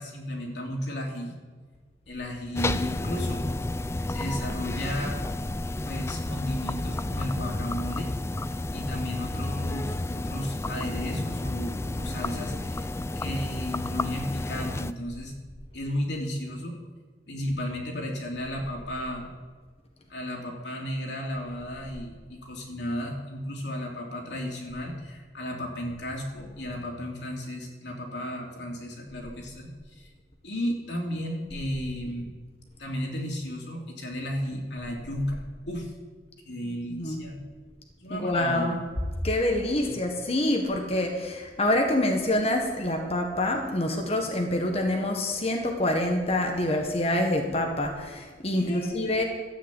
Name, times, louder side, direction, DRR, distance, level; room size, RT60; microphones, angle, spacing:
voice 1, 0.0-1.3 2.1-3.5 4.1-5.2 5.8-8.1 8.7-12.9 13.1-15.3 15.7-16.8 17.3-19.3 20.1-30.1 30.4-32.3 32.8-35.9 36.4-37.4 38.0-38.8 39.8-40.0 48.5-49.2, equal, 85° left, 0 dB, 2.9 m, -34 dB
sound 1, 2.6-14.9, left 2 dB, 15° left, 0.3 m, -31 dB
voice 2, 38.1-38.8 39.2-49.2, left 1 dB, 35° left, 2 dB, 1.4 m, -26 dB
13.0 x 7.8 x 8.4 m, 1.5 s
head